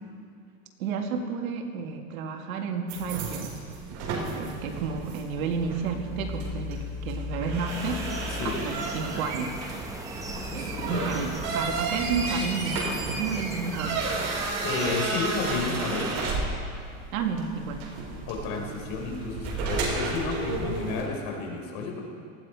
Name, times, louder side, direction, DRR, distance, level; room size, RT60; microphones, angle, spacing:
voice 1, 0.8-3.5 4.1-8.1 8.4-9.6 10.5-14.2 17.1-17.9, right 5 dB, 85° right, 3 dB, 2.1 m, -31 dB
sound 1, 2.9-21.0, right 2 dB, 60° right, 4.8 m, -32 dB
sound 2, 7.7-15.0, right 2 dB, 10° right, 1.1 m, -39 dB
voice 2, 8.3-8.6 10.2-11.1 14.6-16.2 18.3-22.0, left 4 dB, 50° left, 1 dB, 4.0 m, -32 dB
19.0 x 15.5 x 4.8 m, 2.3 s
supercardioid pair, 140°, 41 cm